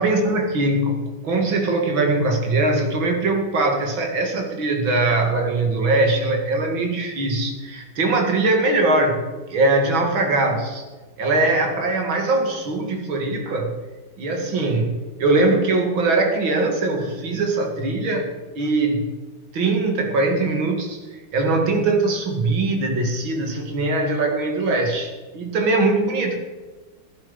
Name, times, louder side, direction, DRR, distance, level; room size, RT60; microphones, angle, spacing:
voice 1, 0.0-9.2 9.5-10.8 11.2-13.7 14.2-19.1 19.5-21.0 21.3-26.4, right 2 dB, 65° right, 3 dB, 3.0 m, -21 dB
17.0 x 10.5 x 5.3 m, 1.3 s
omnidirectional pair, 2.4 m